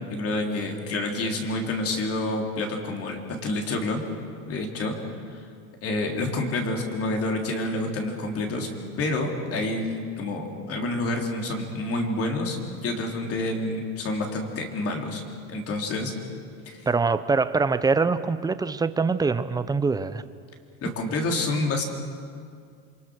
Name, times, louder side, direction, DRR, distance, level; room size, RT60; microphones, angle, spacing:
voice 1, 0.1-4.0 4.4-5.0 5.3-5.4 5.8-8.7 9.0-15.2 15.5-16.1 16.7-16.9 20.8-21.8, left 2 dB, 35° left, 2 dB, 3.6 m, -28 dB
voice 2, 16.9-20.2, right 4 dB, 10° right, 13 dB, 0.6 m, -24 dB
27.5 x 23.5 x 6.4 m, 2.2 s
supercardioid pair, 135°, 40 cm